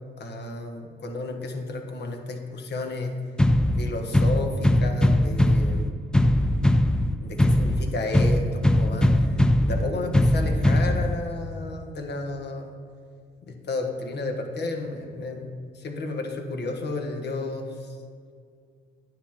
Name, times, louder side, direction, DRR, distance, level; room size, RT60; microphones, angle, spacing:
voice 1, 0.2-3.1 3.8-5.9 7.2-12.7 13.4-18.0, left 2 dB, 60° left, 4 dB, 1.2 m, -32 dB
sound 1, 3.4-11.4, left 1 dB, 5° left, 0.4 m, -21 dB
9.7 x 7.9 x 2.9 m, 2.2 s
cardioid pair, 90°, 20 cm